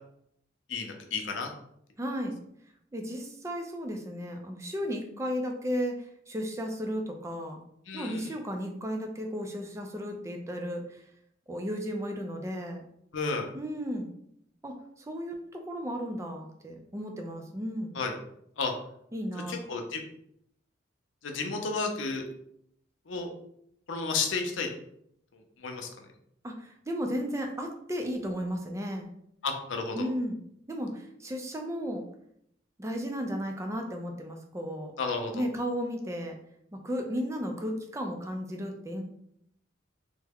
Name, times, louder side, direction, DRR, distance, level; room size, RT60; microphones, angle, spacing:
voice 1, 0.7-1.5 7.9-8.2 13.1-13.5 17.9-18.1 18.6-18.7 19.5-20.0 21.2-22.2 23.1-23.3 23.9-24.7 25.3-25.9 29.4-30.1 35.0-35.5, left 4 dB, 90° left, 3 dB, 0.6 m, -32 dB
voice 2, 2.0-2.4 2.9-7.6 7.9-11.0 11.5-12.8 13.5-14.1 14.6-18.0 19.1-19.5 26.4-29.1 29.9-30.4 30.7-32.0 32.8-34.9 35.3-36.4 36.8-39.0, equal, 15° right, 3 dB, 0.4 m, -34 dB
3.4 x 2.1 x 3.5 m, 0.73 s
head